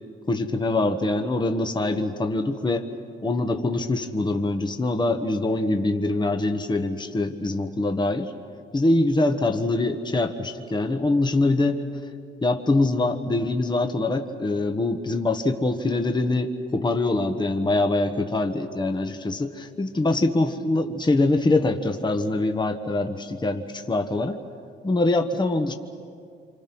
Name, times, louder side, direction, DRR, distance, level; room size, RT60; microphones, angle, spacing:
voice 1, 0.3-2.9 3.2-8.3 8.7-11.8 12.4-24.4 24.8-25.7, left 2 dB, 20° left, 5 dB, 1.4 m, -24 dB
27.0 x 26.0 x 6.1 m, 2.3 s
cardioid pair, 90°, 20 cm